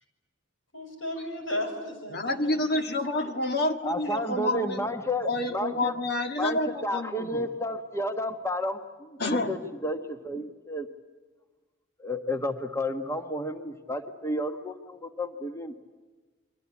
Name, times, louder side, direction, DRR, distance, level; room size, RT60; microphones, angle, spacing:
voice 1, 0.7-2.8, left 1 dB, 75° left, 4 dB, 7.0 m, -35 dB
voice 2, 2.1-4.9 5.3-7.4 9.2-9.6, left 2 dB, 50° left, 6 dB, 1.7 m, -29 dB
voice 3, 3.8-5.9 6.4-10.9 12.0-15.8, left 1 dB, 15° left, 6 dB, 1.3 m, -32 dB
29.0 x 24.0 x 8.4 m, 1.3 s
head